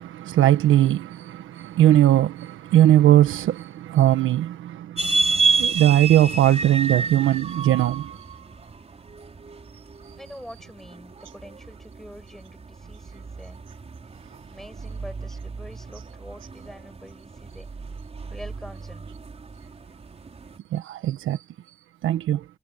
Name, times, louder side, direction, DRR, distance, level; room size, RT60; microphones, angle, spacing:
voice 1, 0.0-8.1 20.7-21.4 22.0-22.4, right 12 dB, 80° right, 1.4 m, -20 dB
sound 1, 5.0-20.6, right 4 dB, 30° right, 5.5 m, -30 dB
voice 2, 10.2-13.6 14.5-17.7 18.3-19.1, equal, ahead, 6.5 m, -45 dB
cardioid pair, 90°, 20 cm